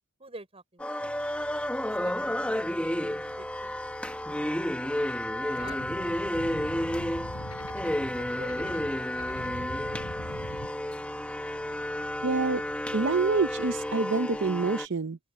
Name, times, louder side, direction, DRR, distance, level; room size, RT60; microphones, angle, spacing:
voice 1, 0.2-1.2 2.0-2.6 3.0-4.8 5.5-7.6 8.1-10.4, right 2 dB, 25° right, 6.1 m, -50 dB
sound 1, 0.8-14.9, left 1 dB, 5° left, 1.4 m, -31 dB
sound 2, 1.0-13.9, equal, 65° left, 7.7 m, -54 dB
sound 3, 5.6-10.7, left 1 dB, 80° left, 6.7 m, -41 dB
voice 2, 12.2-12.6 12.9-15.2, right 3 dB, 55° right, 0.7 m, -27 dB
open air
head